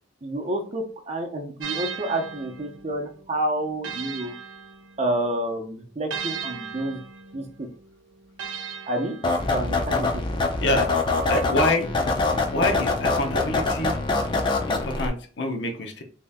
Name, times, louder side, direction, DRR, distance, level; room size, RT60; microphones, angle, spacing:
voice 1, 0.2-4.3 5.0-7.0 7.3-7.7 8.9-9.2 9.5-10.2, right 1 dB, 35° right, 3 dB, 0.6 m, -29 dB
sound 1, 1.6-5.3 6.1-9.8, right 6 dB, 80° right, 0.6 m, -37 dB
sound 2, 9.2-15.1, left 3 dB, 25° left, 0.5 m, -24 dB
voice 2, 11.3-11.9 12.5-14.0 14.7-16.0, left 2 dB, 60° left, 3 dB, 0.7 m, -26 dB
3.1 x 2.8 x 3.4 m, 0.41 s
head